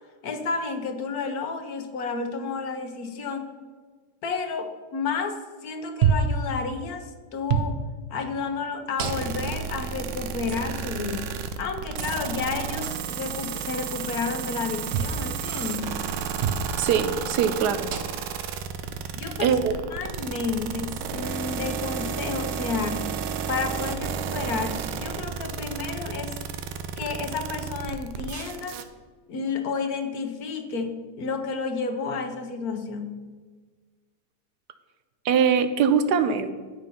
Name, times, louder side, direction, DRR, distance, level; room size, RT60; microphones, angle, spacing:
voice 1, 0.2-3.5 4.2-7.8 8.1-16.0 19.1-19.6 19.9-23.1 23.5-26.4 27.0-28.8 29.3-33.2, left 4 dB, 65° left, 6 dB, 1.3 m, -31 dB
sound 1, 6.0-6.4 7.5-7.7 9.0-9.5 10.5-10.6 12.0-12.2 14.9-15.2 16.4-16.7 17.9-18.3 19.4-19.5 20.9-21.1, right 6 dB, 60° right, 0.7 m, -26 dB
sound 2, 9.0-28.8, right 7 dB, 90° right, 1.4 m, -32 dB
voice 2, 16.8-17.9 19.4-19.7 35.2-36.5, right 7 dB, 75° right, 10 dB, 1.2 m, -22 dB
9.4 x 6.4 x 5.5 m, 1.4 s
omnidirectional pair, 1.9 m